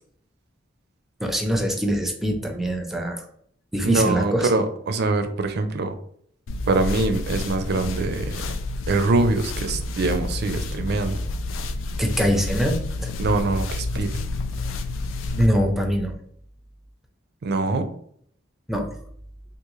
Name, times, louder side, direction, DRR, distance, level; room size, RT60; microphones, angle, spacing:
voice 1, 1.2-3.2 3.7-4.5 12.0-13.1 15.4-16.1 18.7-18.9, equal, ahead, 3 dB, 0.5 m, -23 dB
voice 2, 3.8-6.0 6.7-8.4 8.9-11.2 13.2-14.1 17.4-17.9, right 3 dB, 60° right, 8 dB, 0.4 m, -23 dB
sound 1, 6.5-15.5, left 2 dB, 85° left, 0.3 m, -29 dB
3.6 x 2.4 x 3.1 m, 0.64 s
head